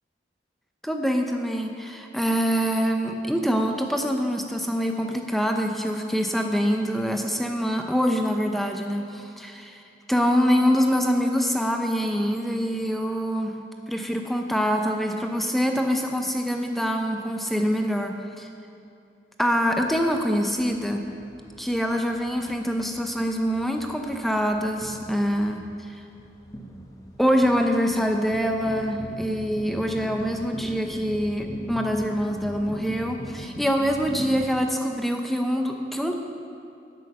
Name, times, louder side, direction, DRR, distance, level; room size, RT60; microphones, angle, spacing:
voice 1, 0.8-9.8 10.1-13.6 13.9-18.5 19.4-21.1 21.6-26.0 27.2-36.1, equal, ahead, 3 dB, 0.5 m, -25 dB
sound 1, 19.7-34.5, equal, 20° left, 0.9 m, -41 dB
11.0 x 6.3 x 7.5 m, 2.6 s
head